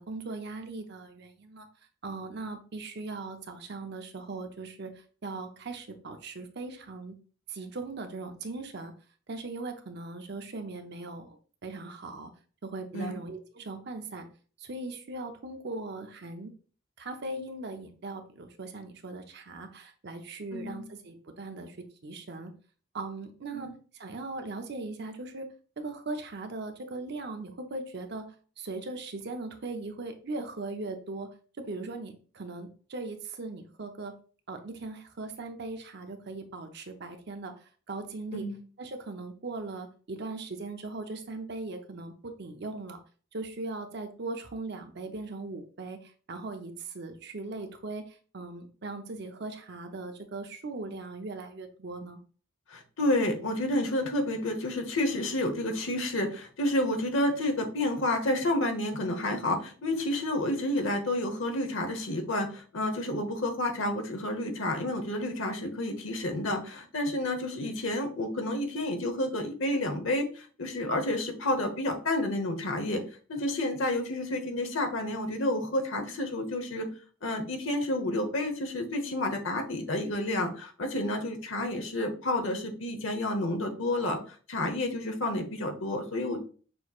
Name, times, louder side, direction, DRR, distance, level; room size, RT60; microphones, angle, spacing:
voice 1, 0.0-1.7 2.0-4.9 5.2-7.1 7.5-8.9 9.3-11.4 11.6-12.3 12.6-14.3 14.6-16.5 17.0-22.5 22.9-23.7 24.0-25.5 25.8-31.3 31.6-34.1 34.5-37.5 37.9-38.5 38.8-43.0 43.3-46.0 46.3-52.2, right 3 dB, 55° right, 6 dB, 0.6 m, -39 dB
voice 2, 20.5-20.8 23.5-23.7 38.3-38.6 52.7-73.0 73.3-76.9 77.2-84.2 84.5-86.4, left 1 dB, 70° left, 6 dB, 1.0 m, -30 dB
6.2 x 3.0 x 2.4 m, 0.40 s
head